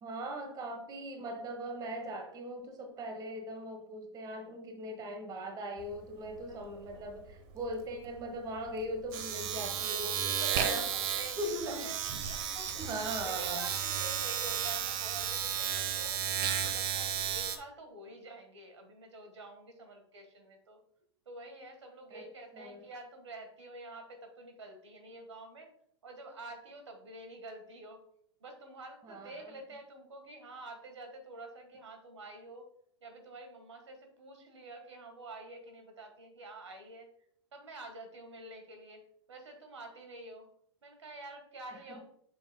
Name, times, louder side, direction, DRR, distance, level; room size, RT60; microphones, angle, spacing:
voice 1, 0.0-10.3 10.6-10.9 11.4-11.9 12.8-13.6 22.1-22.3 22.5-22.9 29.0-29.6 41.9-42.0, right 1 dB, 25° right, 5 dB, 1.1 m, -40 dB
Domestic sounds home sounds, 5.8-6.0 6.3-17.6, right 9 dB, 50° right, 0.8 m, -34 dB
voice 2, 10.1-13.0 13.2-16.2 16.5-20.8 21.2-25.7 26.0-28.0 28.4-32.6 33.0-37.1 37.5-39.0 39.3-40.5 40.8-42.0, right 2 dB, 85° right, 5 dB, 1.5 m, -48 dB
6.7 x 6.3 x 2.2 m, 0.68 s
hypercardioid pair, 110°, 15 cm